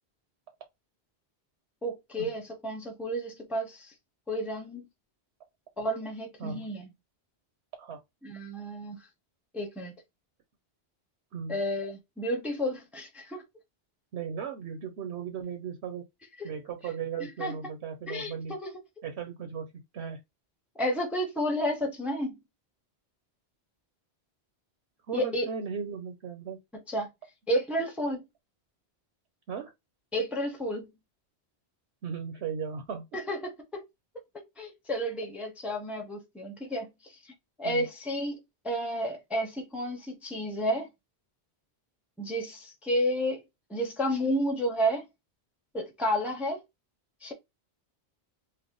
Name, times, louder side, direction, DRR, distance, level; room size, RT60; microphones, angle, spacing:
voice 1, 1.8-3.9 4.3-4.9 5.8-6.9 8.2-9.0 9.5-9.9 11.5-13.4 16.4-16.5 17.4-17.5 18.1-18.7 20.8-22.4 25.1-25.5 26.9-27.1 27.5-28.2 30.1-30.9 33.1-33.8 34.3-37.3 37.6-38.4 38.6-40.9 42.2-43.4 43.7-45.0 45.7-46.6 47.2-47.3, equal, ahead, 0.7 m, -31 dB
voice 2, 14.1-16.1 16.4-18.6 19.0-20.2 25.1-26.6 29.5-29.7 32.0-33.1 37.6-37.9, right 6 dB, 75° right, 1.0 m, -36 dB
3.3 x 2.1 x 3.7 m
omnidirectional pair, 1.1 m